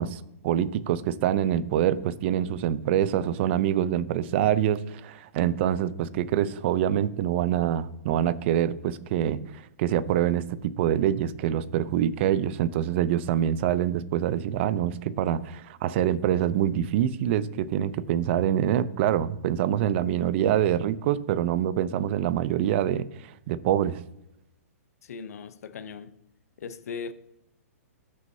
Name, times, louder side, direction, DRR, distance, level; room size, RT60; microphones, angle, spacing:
voice 1, 0.0-9.4 9.8-24.0, right 10 dB, 50° right, 0.6 m, -25 dB
voice 2, 25.0-26.2 26.6-27.1, left 5 dB, 75° left, 0.8 m, -38 dB
15.5 x 6.3 x 2.8 m
hypercardioid pair, 135°, 8 cm